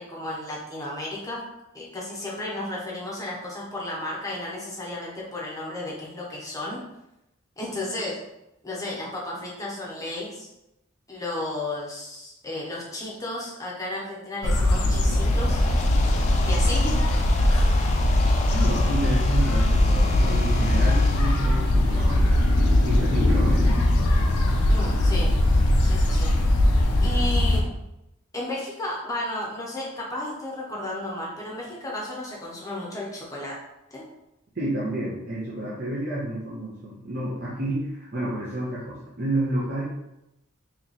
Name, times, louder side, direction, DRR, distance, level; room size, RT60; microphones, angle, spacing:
voice 1, 0.0-1.4 1.7-6.8 7.6-8.2 8.6-10.5 11.1-15.8 16.4-17.7 24.7-25.3 25.8-26.3 27.0-27.7 28.3-33.6 33.9-34.0, left 1 dB, 15° left, -4 dB, 0.8 m, -33 dB
sound 1, 14.4-27.6, left 1 dB, 90° left, 0.6 m, -20 dB
sound 2, 14.9-21.3, left 3 dB, 30° left, 0.3 m, -34 dB
voice 2, 18.5-22.4 22.9-23.7 34.5-39.8, right 1 dB, 45° right, -8 dB, 0.7 m, -30 dB
3.2 x 2.9 x 4.0 m, 0.89 s
head